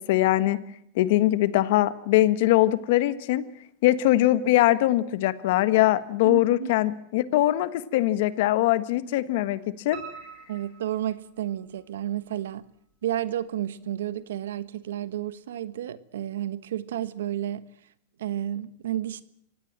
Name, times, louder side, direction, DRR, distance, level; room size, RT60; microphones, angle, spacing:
voice 1, 0.1-0.6 0.9-3.4 3.8-9.6 9.8-10.0, left 15 dB, 65° left, 14 dB, 1.5 m, -22 dB
voice 2, 6.2-6.7 10.5-12.6 13.0-17.6 18.2-19.2, right 11 dB, 85° right, 15 dB, 1.3 m, -31 dB
Piano, 9.9-11.8 12.3-13.1 13.5-13.6 14.0-14.1 14.4-14.5, right 8 dB, 50° right, 8.0 m, -45 dB
25.0 x 17.5 x 7.5 m, 0.71 s
supercardioid pair, 135°, 0 cm